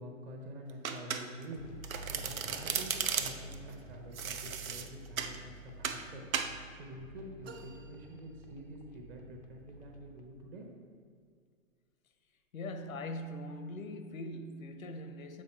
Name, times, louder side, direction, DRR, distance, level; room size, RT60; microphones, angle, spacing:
voice 1, 0.0-6.2 6.7-10.7, equal, 30° right, 1.0 m, -47 dB
Domestic sounds home sounds, 0.8-1.5 1.8-3.6 4.2-5.4 5.8-6.0 6.3-6.6, right 7 dB, 85° right, 0.6 m, -35 dB
sound 1, 1.6-10.3, right 1 dB, 35° left, 0.4 m, -51 dB
sound 2, 7.4-9.1, right 5 dB, 50° right, 0.8 m, -55 dB
voice 2, 12.5-15.4, left 1 dB, 85° left, 0.7 m, -41 dB
7.6 x 4.0 x 4.3 m
hypercardioid pair, 130°, 40 cm